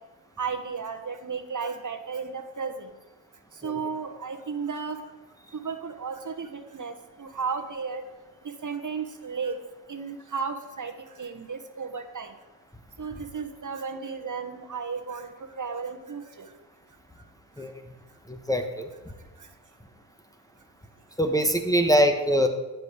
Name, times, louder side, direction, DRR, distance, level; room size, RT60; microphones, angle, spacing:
voice 1, 0.4-2.9 3.6-5.0 5.6-6.9 7.2-8.0 8.6-9.5 9.9-10.9 11.2-12.3 13.0-15.3 15.6-16.5, right 5 dB, 45° right, 7 dB, 1.3 m, -34 dB
voice 2, 18.5-18.9 21.2-22.5, equal, 10° left, 4 dB, 1.1 m, -22 dB
12.0 x 5.4 x 8.2 m, 1.1 s
cardioid pair, 70°, 43 cm